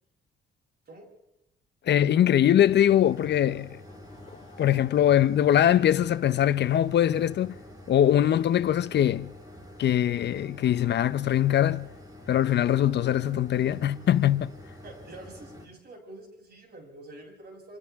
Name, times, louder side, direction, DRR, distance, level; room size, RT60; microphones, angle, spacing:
voice 1, 1.8-3.8 4.6-7.5 7.9-9.3 9.8-11.9 12.3-14.5, left 11 dB, 60° left, 0.7 m, -22 dB
sound 1, 2.6-15.6, left 1 dB, 20° right, 4.5 m, -47 dB
Laughter / Crowd, 3.5-7.7, left 2 dB, 25° left, 7.4 m, -59 dB
voice 2, 14.8-17.8, right 2 dB, 55° right, 7.5 m, -46 dB
28.0 x 27.0 x 3.6 m
cardioid pair, 90°, 20 cm